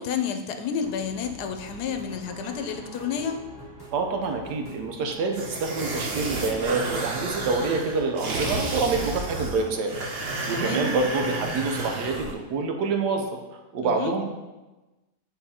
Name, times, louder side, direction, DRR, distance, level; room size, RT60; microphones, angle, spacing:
voice 1, 0.0-3.4 10.5-10.9 13.8-14.1, left 7 dB, 75° left, 7 dB, 1.1 m, -30 dB
sound 1, 0.8-9.1, right 1 dB, 15° left, 0.9 m, -46 dB
voice 2, 3.9-9.9 10.5-13.3 13.7-14.3, right 4 dB, 80° right, 3 dB, 1.3 m, -27 dB
sound 2, 5.3-12.3, right 2 dB, 45° right, 0.9 m, -31 dB
9.1 x 4.0 x 2.8 m, 1.1 s
omnidirectional pair, 1.8 m